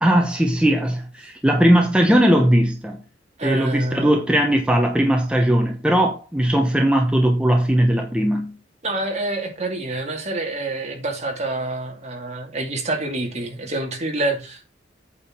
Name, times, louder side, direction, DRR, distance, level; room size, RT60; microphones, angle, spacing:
voice 1, 0.0-3.0 3.4-8.5, right 1 dB, 5° right, 1.0 m, -18 dB
voice 2, 3.4-4.3 8.8-14.7, right 2 dB, 40° right, 2.5 m, -27 dB
8.6 x 4.6 x 6.0 m
head